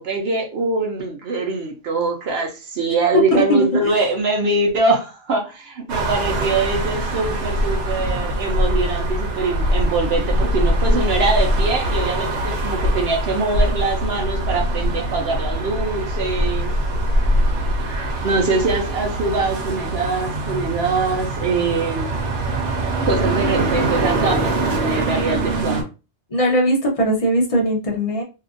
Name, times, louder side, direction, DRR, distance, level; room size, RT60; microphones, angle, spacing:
voice 1, 0.0-16.7 18.2-22.1 23.1-25.8, right 3 dB, 65° right, 0.9 m, -23 dB
voice 2, 3.3-3.9 26.3-28.2, equal, 35° left, 0.8 m, -19 dB
sound 1, 5.9-25.8, right 1 dB, 85° right, 1.1 m, -22 dB
2.8 x 2.5 x 2.4 m
omnidirectional pair, 1.1 m